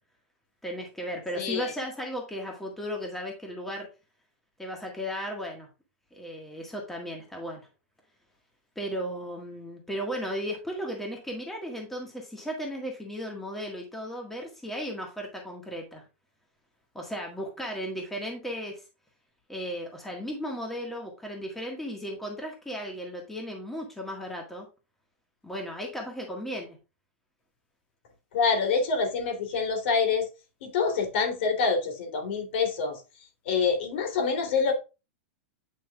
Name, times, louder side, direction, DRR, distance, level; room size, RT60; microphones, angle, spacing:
voice 1, 0.6-3.9 4.6-5.7 6.1-7.6 8.8-16.0 17.0-18.8 19.5-24.7 25.4-26.8, equal, 5° left, 1.7 m, -35 dB
voice 2, 1.4-1.7 28.3-30.3 30.6-33.0 33.4-34.7, left 5 dB, 65° left, 3.1 m, -26 dB
8.8 x 6.0 x 2.4 m
supercardioid pair, 145°, 7 cm